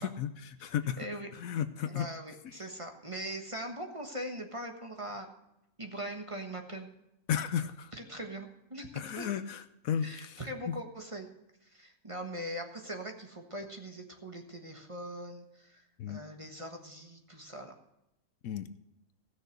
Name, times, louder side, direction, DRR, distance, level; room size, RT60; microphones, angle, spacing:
voice 1, 0.0-1.1 1.3-2.1 7.3-7.9 8.9-10.4 10.7-10.8 16.0-16.2 18.4-18.7, left 8 dB, 70° left, 12 dB, 1.0 m, -34 dB
voice 2, 1.0-1.3 1.8-5.3 5.8-6.9 7.9-9.3 10.0-11.3 11.6-17.7, right 1 dB, 20° right, 3 dB, 1.3 m, -41 dB
16.0 x 6.5 x 6.5 m, 0.86 s
omnidirectional pair, 1.6 m